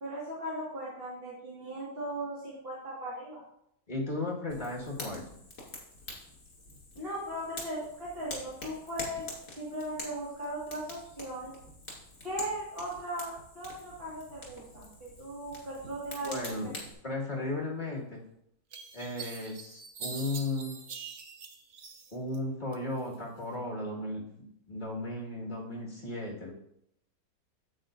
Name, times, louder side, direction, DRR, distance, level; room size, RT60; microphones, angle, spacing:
voice 1, 0.0-3.4 7.0-9.3 9.6-11.5 12.2-16.5, right 1 dB, 40° right, -7 dB, 2.1 m, -38 dB
voice 2, 3.9-5.3 16.2-16.7 17.0-18.2 18.9-20.8 22.1-26.5, left 2 dB, 30° left, -2 dB, 1.9 m, -35 dB
Fire, 4.5-16.9, left 2 dB, 60° left, 2.8 m, -46 dB
sound 1, 18.0-18.1 18.7-22.4 22.7-23.5, right 5 dB, 55° right, 1.0 m, -44 dB
9.4 x 8.0 x 2.6 m, 0.77 s
omnidirectional pair, 1.6 m